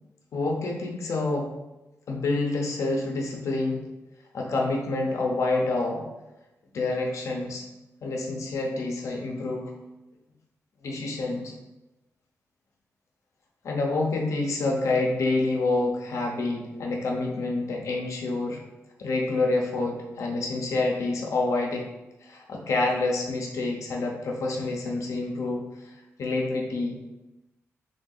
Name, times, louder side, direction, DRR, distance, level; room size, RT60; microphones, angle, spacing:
voice 1, 0.3-1.5 2.1-3.9 4.3-6.0 6.7-7.6 8.0-9.7 10.8-11.5 13.6-18.6 19.0-21.9 22.2-25.7 26.2-27.0, left 2 dB, 70° left, 0 dB, 0.8 m, -27 dB
3.4 x 2.7 x 4.0 m, 0.97 s
cardioid pair, 95°, 5 cm